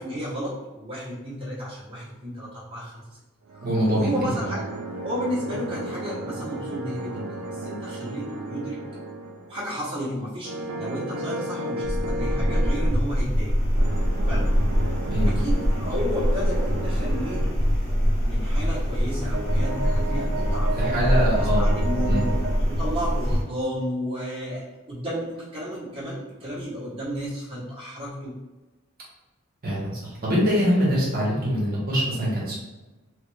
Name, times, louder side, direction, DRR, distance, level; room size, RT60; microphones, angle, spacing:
voice 1, 0.0-3.0 3.5-4.7 5.0-8.8 9.5-13.5 14.2-14.5 15.2-17.6 18.2-22.3 22.7-28.3, equal, 25° right, -10 dB, 1.0 m, -32 dB
sound 1, 3.5-9.6 10.4-13.0 13.7-17.5 18.8-22.6, right 2 dB, 80° right, 0.5 m, -34 dB
voice 2, 3.6-4.3 15.1-15.3 15.8-15.9 20.7-21.7 22.0-22.2 29.6-32.6, equal, 40° right, -6 dB, 1.0 m, -24 dB
sound 2, 11.8-23.4, equal, 60° left, 1.1 m, -24 dB
3.1 x 2.4 x 3.1 m, 1.1 s
head